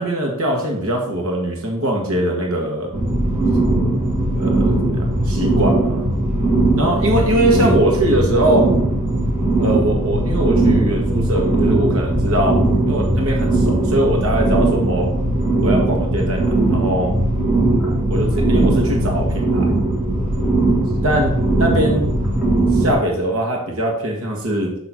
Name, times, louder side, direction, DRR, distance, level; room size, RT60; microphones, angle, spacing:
voice 1, 0.0-2.9 4.4-6.1 6.7-8.7 9.6-12.6 12.9-15.1 15.6-17.1 18.1-19.7 21.0-22.1 22.7-24.7, right 1 dB, 65° right, 0 dB, 1.4 m, -21 dB
sound 1, 2.9-22.9, right 2 dB, 5° right, 2.0 m, -19 dB
7.8 x 3.0 x 6.1 m, 0.77 s
head